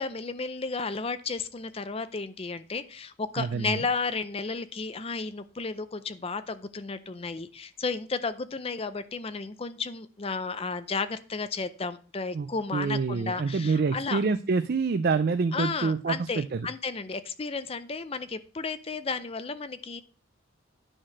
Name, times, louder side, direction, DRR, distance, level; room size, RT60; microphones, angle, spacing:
voice 1, 0.0-14.2 15.5-20.0, left 4 dB, 30° left, 12 dB, 0.5 m, -33 dB
voice 2, 3.4-3.8 12.3-16.7, right 4 dB, 50° right, 11 dB, 0.4 m, -27 dB
9.9 x 4.0 x 6.3 m, 0.40 s
head